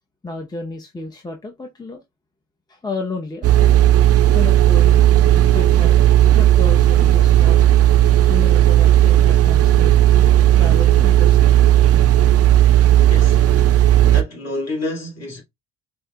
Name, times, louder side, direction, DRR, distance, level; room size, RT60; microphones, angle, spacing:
voice 1, 0.2-2.0 2.7-3.5 4.3-5.1 5.5-6.0 6.3-7.8 8.3-9.9 10.6-11.5, left 3 dB, 10° left, 0.7 m, -31 dB
sound 1, 3.4-14.2, right 12 dB, 40° right, 0.5 m, -13 dB
voice 2, 12.9-15.4, left 2 dB, 40° left, 2.5 m, -30 dB
5.3 x 2.6 x 2.2 m
supercardioid pair, 75°, 38 cm